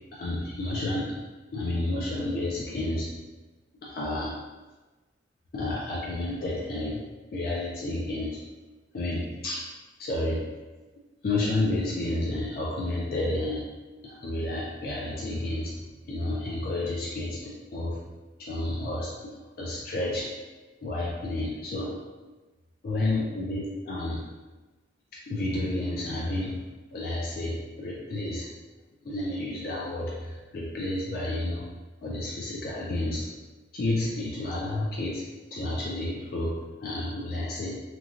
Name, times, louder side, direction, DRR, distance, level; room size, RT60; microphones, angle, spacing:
voice 1, 0.1-1.2 1.5-3.1 3.8-4.4 5.5-7.0 7.3-8.4 8.9-9.6 10.0-10.4 11.2-13.7 14.0-18.0 18.4-20.3 20.8-22.0 22.8-24.3 25.3-26.6 26.9-28.5 29.0-31.7 32.0-33.3 33.7-35.2 35.5-37.8, left 2 dB, 55° left, -5 dB, 0.4 m, -31 dB
3.1 x 2.2 x 2.4 m, 1.2 s
head